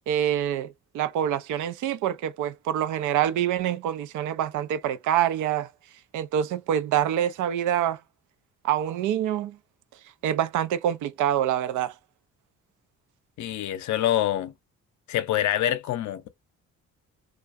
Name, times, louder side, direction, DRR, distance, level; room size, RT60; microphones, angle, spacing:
voice 1, 0.1-5.7 6.1-8.0 8.6-9.6 10.2-11.9, right 10 dB, 80° right, 0.5 m, -26 dB
voice 2, 13.4-14.5 15.1-16.3, left 12 dB, 70° left, 0.6 m, -26 dB
2.3 x 2.3 x 2.5 m
cardioid pair, 90°, 30 cm